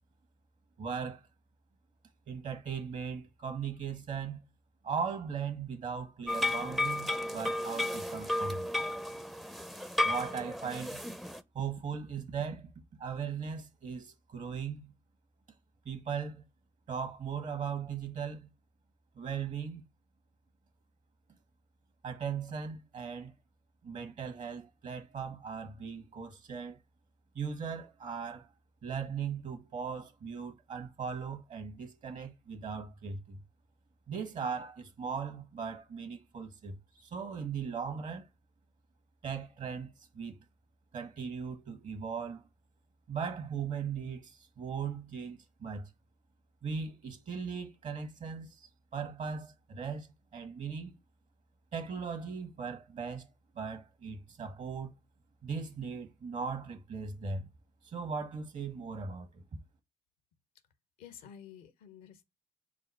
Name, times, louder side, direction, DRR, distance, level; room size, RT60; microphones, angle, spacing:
voice 1, 0.8-1.2 2.3-4.4 4.8-8.7 10.0-11.0 11.5-12.7 13.0-14.9 15.8-16.4 16.9-18.5 19.1-19.8 22.0-23.3 23.8-26.8 27.3-28.5 28.8-33.4 34.1-38.3 39.2-40.4 40.9-42.5 43.1-45.9 46.6-50.1 50.3-50.9 51.7-53.3 53.5-54.9 55.4-57.5 57.8-59.4, right 6 dB, 55° right, 1.3 m, -38 dB
sound 1, 6.3-11.4, left 1 dB, ahead, 0.5 m, -33 dB
voice 2, 61.0-62.3, left 9 dB, 75° left, 0.6 m, -51 dB
4.9 x 2.0 x 4.1 m
hypercardioid pair, 45°, 15 cm